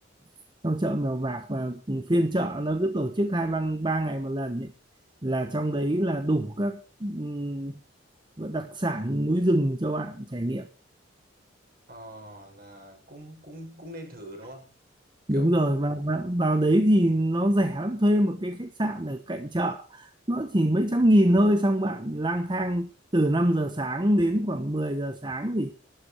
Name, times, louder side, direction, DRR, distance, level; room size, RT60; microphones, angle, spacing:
voice 1, 0.6-4.7 5.2-7.7 8.4-10.7 15.3-25.7, right 1 dB, 25° right, 1.0 m, -25 dB
voice 2, 11.9-14.7 15.3-15.6, equal, 50° right, 6.4 m, -43 dB
12.5 x 11.5 x 6.6 m
head